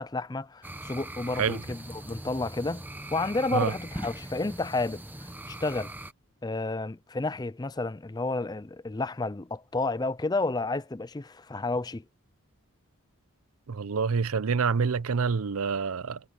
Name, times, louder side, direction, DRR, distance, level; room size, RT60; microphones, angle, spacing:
voice 1, 0.0-5.9 6.4-12.0, left 3 dB, 20° left, 0.4 m, -31 dB
sound 1, 0.6-6.1, right 1 dB, 10° right, 0.9 m, -41 dB
voice 2, 13.7-16.2, right 5 dB, 75° right, 0.6 m, -27 dB
head